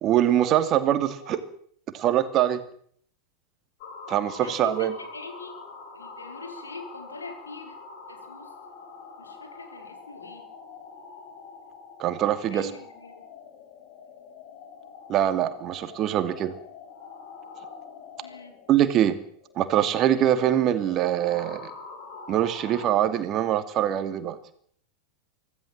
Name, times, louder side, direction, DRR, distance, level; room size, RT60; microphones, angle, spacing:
voice 1, 0.0-1.4 1.9-2.6 4.1-4.9 12.0-12.7 15.1-16.5 18.7-19.2 19.6-21.7 22.3-24.4, right 11 dB, 35° right, 10 dB, 2.6 m, -23 dB
sound 1, 3.8-23.1, left 4 dB, 50° left, 6.7 m, -45 dB
voice 2, 4.2-5.5 5.9-7.8 8.1-8.5 9.2-10.4 12.5-13.2 18.2-18.6, left 3 dB, 75° left, 5 dB, 5.6 m, -43 dB
25.0 x 17.0 x 7.6 m, 0.62 s
figure-of-eight pair, 90°, 0 cm